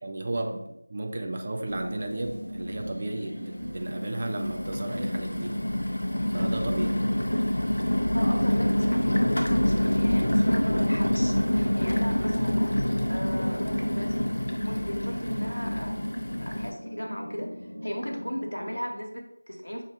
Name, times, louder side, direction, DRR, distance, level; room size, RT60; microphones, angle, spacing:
voice 1, 0.0-5.6 6.3-7.2, right 2 dB, 25° right, 3 dB, 0.4 m, -34 dB
sound 1, 1.6-18.8, left 1 dB, 90° right, 1.7 m, -39 dB
sound 2, 1.7-1.8 2.2-2.9 3.5-16.7, left 1 dB, 60° left, 0.6 m, -26 dB
voice 2, 8.1-15.9 16.4-17.5 17.8-19.8, equal, 75° left, 2 dB, 1.1 m, -37 dB
5.8 x 2.5 x 3.6 m, 0.82 s
figure-of-eight pair, 170°, 0 cm